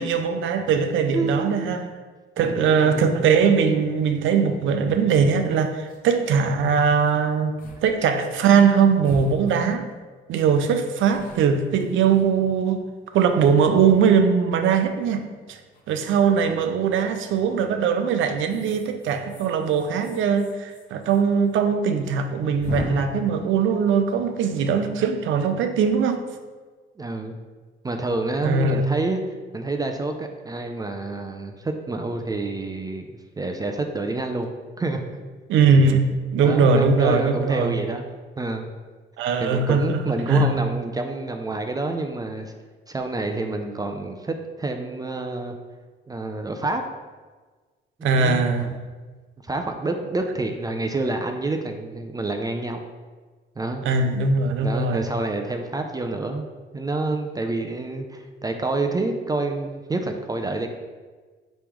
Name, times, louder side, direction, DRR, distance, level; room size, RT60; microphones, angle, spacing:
voice 1, 0.0-1.8 2.4-7.5 7.8-9.9 10.3-12.8 13.1-15.6 15.9-26.2 28.4-28.8 35.5-37.8 39.2-40.6 48.0-48.7 53.8-55.1, right 6 dB, 75° right, 0.5 m, -21 dB
voice 2, 1.1-1.6 2.4-3.3 27.0-27.4 27.8-29.2 29.5-33.0 33.4-34.5 34.8-35.0 36.4-38.0 38.4-38.7 39.4-42.5 42.9-45.6 46.1-46.8 48.0-48.7 49.4-52.8 53.6-53.8 54.6-56.5 56.7-60.7, right 2 dB, 20° right, 0.4 m, -28 dB
sound 1, 4.8-5.0 5.4-5.5 5.7-6.1 7.0-7.2 7.6-7.8 8.1-8.2 9.0-10.0 10.5-12.8 13.3-14.1 15.7-16.0 17.3-17.6 18.4-21.2 21.5-21.6 21.8-21.9 22.6-22.9, left 2 dB, 45° left, 1.0 m, -40 dB
4.6 x 3.1 x 3.5 m
cardioid pair, 90°, 20 cm